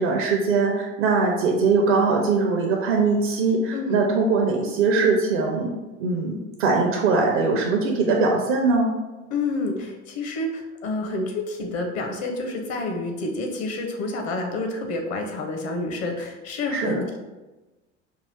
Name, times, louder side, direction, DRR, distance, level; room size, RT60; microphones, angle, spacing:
voice 1, 0.0-5.7 6.0-8.9 16.7-17.1, right 4 dB, 60° right, 0 dB, 0.7 m, -21 dB
voice 2, 9.3-17.2, left 2 dB, 40° left, 3 dB, 0.9 m, -29 dB
4.5 x 2.4 x 3.5 m, 1.1 s
figure-of-eight pair, 70°, 38 cm